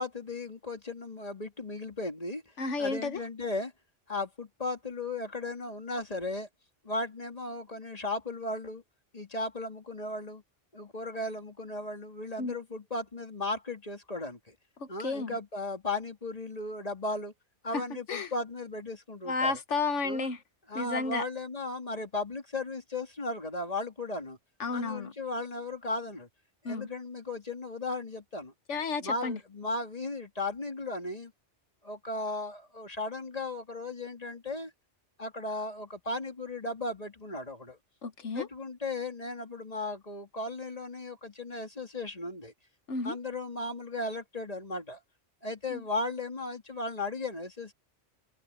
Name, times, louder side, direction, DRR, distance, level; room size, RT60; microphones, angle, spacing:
voice 1, 0.0-2.4 2.8-3.7 4.1-6.5 6.8-8.8 9.1-10.4 10.7-14.5 14.9-17.3 17.6-19.6 20.0-20.3 20.7-24.4 24.7-26.3 26.6-28.5 29.0-31.3 31.8-34.7 35.2-37.8 38.3-42.5 43.0-45.0 45.4-47.7, left 2 dB, 30° left, 2.6 m, -36 dB
voice 2, 2.6-3.2 12.4-12.5 14.8-15.4 17.7-17.8 18.1-18.3 19.3-20.4 20.7-21.2 24.6-25.1 26.6-26.9 28.7-29.4 38.0-38.5 42.9-43.2 45.7-45.8, left 4 dB, 80° left, 1.5 m, -32 dB
omnidirectional pair, 1.2 m